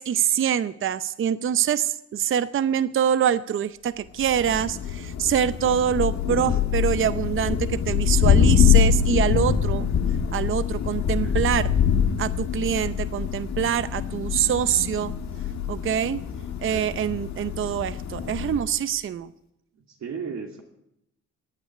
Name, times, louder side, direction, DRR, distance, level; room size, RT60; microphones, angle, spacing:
voice 1, 0.0-9.9 10.3-11.7 12.2-15.1 15.7-16.2 16.6-19.3, right 9 dB, 45° right, 14 dB, 0.7 m, -25 dB
Thunder, 4.2-18.8, left 8 dB, 65° left, 1.8 m, -24 dB
voice 2, 11.0-11.4 16.5-16.9 19.7-20.6, right 6 dB, 60° right, 1 dB, 2.6 m, -37 dB
15.0 x 9.1 x 10.0 m, 0.82 s
cardioid pair, 90°, 30 cm